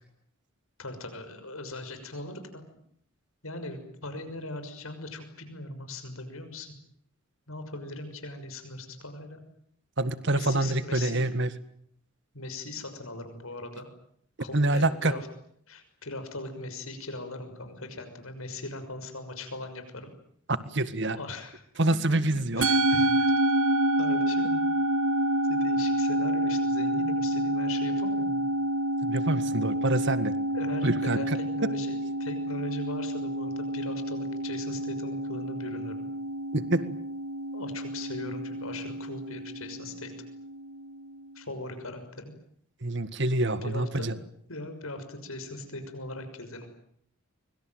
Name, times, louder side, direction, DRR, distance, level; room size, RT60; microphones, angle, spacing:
voice 1, 0.8-2.6 3.4-6.7 7.5-9.4 10.3-11.3 12.3-13.9 14.4-15.3 15.7-20.1 21.1-21.6 21.9-23.3 24.0-24.7 25.5-28.4 30.5-36.1 37.5-40.1 41.3-42.3 43.6-44.2 44.5-46.7, left 2 dB, 75° left, 8 dB, 6.2 m, -39 dB
voice 2, 10.0-11.5 14.5-15.1 20.5-21.2 21.8-22.7 29.0-30.4 30.8-31.2 36.5-36.9 42.8-44.1, right 2 dB, 55° right, 13 dB, 1.8 m, -26 dB
Musical instrument, 22.6-41.1, right 1 dB, 75° right, 2.1 m, -28 dB
24.5 x 24.5 x 9.3 m, 0.67 s
head